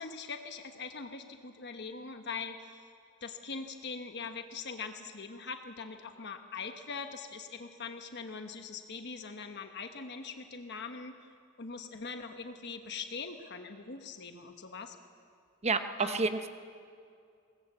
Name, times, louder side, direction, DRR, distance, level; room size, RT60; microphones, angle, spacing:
voice 1, 0.0-2.8 3.2-11.1 11.6-15.0 16.0-16.2, left 5 dB, 50° left, 6 dB, 1.2 m, -42 dB
voice 2, 15.6-16.5, right 4 dB, 30° right, 9 dB, 1.0 m, -29 dB
22.0 x 18.5 x 8.2 m, 2.4 s
head